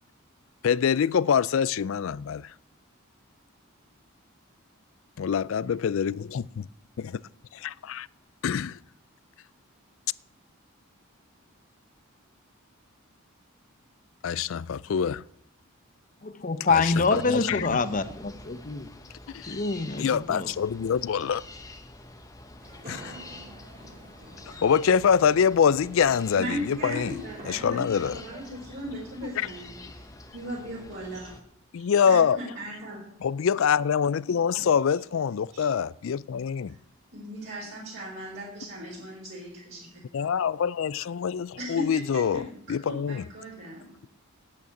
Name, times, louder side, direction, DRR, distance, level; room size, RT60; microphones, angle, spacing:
voice 1, 0.6-2.5 5.2-6.7 7.0-7.2 7.5-8.1 8.4-8.8 14.2-15.2 16.7-17.8 19.3-19.5 20.0-21.4 22.9-23.1 24.6-27.1 27.5-28.2 29.4-29.5 31.7-32.4 33.2-36.8 40.1-42.4 42.7-43.2, left 7 dB, 65° left, 0.4 m, -25 dB
voice 2, 16.2-18.9 19.5-20.5, left 3 dB, 35° left, 0.7 m, -26 dB
sound 1, 16.9-31.4, left 2 dB, 15° left, 1.0 m, -47 dB
sound 2, 22.6-28.1, right 1 dB, 40° right, 2.9 m, -48 dB
voice 3, 26.3-27.8 28.1-30.1 30.3-31.3 32.1-33.0 34.6-34.7 35.5-35.7 37.1-39.9 40.2-40.3 41.6-42.5 42.9-43.9, equal, 55° right, 4.4 m, -37 dB
9.0 x 8.3 x 9.4 m
head